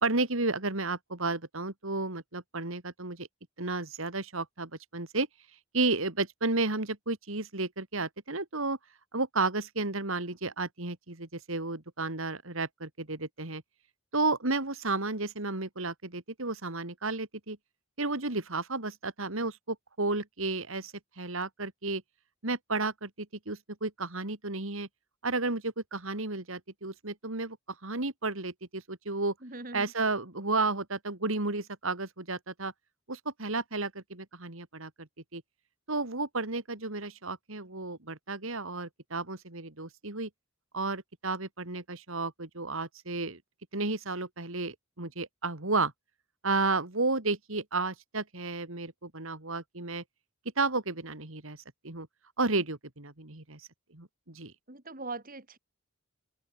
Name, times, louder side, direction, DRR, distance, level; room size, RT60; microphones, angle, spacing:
voice 1, 0.0-3.3 3.6-5.3 5.7-8.8 9.1-13.6 14.1-17.6 18.0-22.0 22.4-24.9 25.2-27.6 27.8-29.3 29.7-32.7 33.1-35.1 35.3-35.4 35.9-40.3 40.7-43.4 43.7-45.9 46.4-50.0 50.6-51.6 51.8-52.1 52.4-53.7 53.9-54.5, right 3 dB, 65° right, 2.8 m, -32 dB
voice 2, 29.4-29.9 54.7-55.6, right 3 dB, 40° right, 3.4 m, -41 dB
open air
head